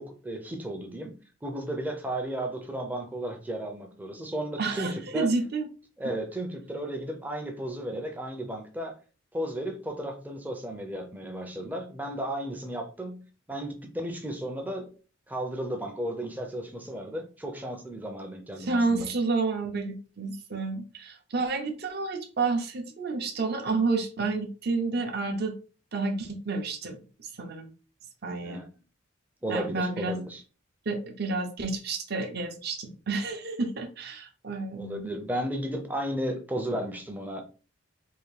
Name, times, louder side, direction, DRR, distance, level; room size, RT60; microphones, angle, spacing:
voice 1, 0.0-5.3 6.0-9.0 9.3-13.2 13.5-14.9 15.3-19.1 28.4-28.7 29.4-30.4 34.7-37.4, right 1 dB, 10° right, 0.5 m, -34 dB
voice 2, 4.6-5.7 18.6-25.5 25.9-27.0 27.2-27.7 28.2-28.6 29.5-30.2 30.9-35.1, right 3 dB, 50° right, 0.6 m, -30 dB
3.6 x 2.5 x 3.2 m
head